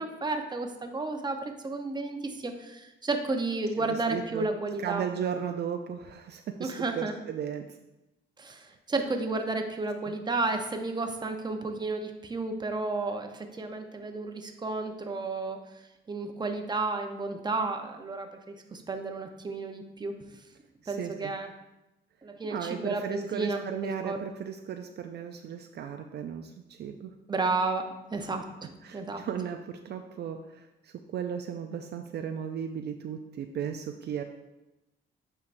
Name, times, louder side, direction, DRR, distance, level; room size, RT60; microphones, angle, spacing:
voice 1, 0.0-5.0 6.6-7.1 8.4-15.6 16.1-20.1 20.9-21.5 22.2-24.2 27.3-27.8 28.1-29.2, right 3 dB, 20° right, 5 dB, 0.8 m, -32 dB
voice 2, 3.8-4.5 4.8-7.8 10.1-10.2 20.8-21.3 22.5-27.1 28.2-28.3 28.8-34.2, right 8 dB, 55° right, 5 dB, 0.4 m, -36 dB
8.6 x 4.6 x 2.6 m, 0.96 s
cardioid pair, 90°, 20 cm